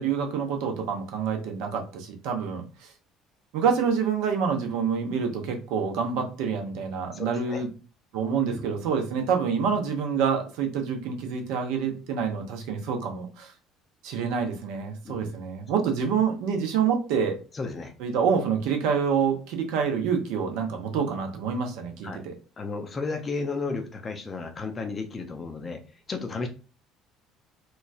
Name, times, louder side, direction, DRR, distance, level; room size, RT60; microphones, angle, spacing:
voice 1, 0.0-2.9 3.5-7.7 8.1-13.5 14.0-17.4 18.0-22.3, right 6 dB, 65° right, 4 dB, 0.6 m, -27 dB
voice 2, 7.1-7.6 8.5-8.6 15.0-15.3 17.5-17.9 22.0-22.2 22.6-25.8 26.1-26.5, left 4 dB, 30° left, 5 dB, 0.5 m, -33 dB
3.0 x 2.2 x 2.4 m, 0.34 s
figure-of-eight pair, 55°, 0 cm